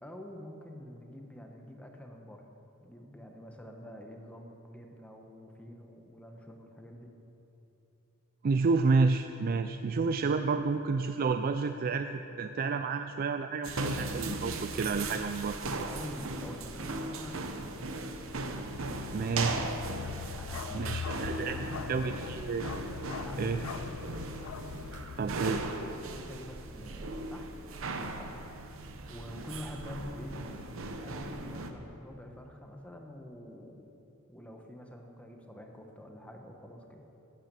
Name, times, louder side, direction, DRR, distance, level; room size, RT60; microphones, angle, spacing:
voice 1, 0.0-2.4 2.8-7.1 15.8-17.7 20.3-21.9 23.2-24.0 26.0-27.5 27.9-28.3 29.1-33.8 34.3-37.1, equal, 5° left, 2 dB, 1.0 m, -46 dB
voice 2, 8.4-15.9 19.1-19.7 20.7-21.6 21.9-22.7 23.4-23.6 25.2-25.6, right 4 dB, 45° right, 8 dB, 0.3 m, -30 dB
sound 1, 13.6-31.7, right 2 dB, 65° right, 0.9 m, -38 dB
Bark, 18.7-25.8, left 7 dB, 85° left, 0.3 m, -42 dB
11.5 x 8.8 x 6.9 m, 3.0 s
head